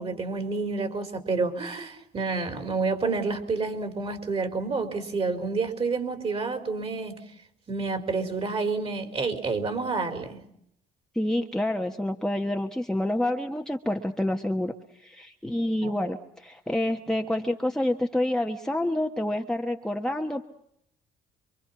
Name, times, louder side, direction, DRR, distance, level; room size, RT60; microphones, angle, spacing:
voice 1, 0.0-7.2 7.7-10.4 15.8-15.9, right 4 dB, 35° right, 8 dB, 4.5 m, -29 dB
voice 2, 11.1-14.7 15.0-20.4, left 1 dB, 5° left, 2 dB, 1.4 m, -28 dB
27.0 x 24.5 x 5.9 m, 0.73 s
cardioid pair, 110°, 17 cm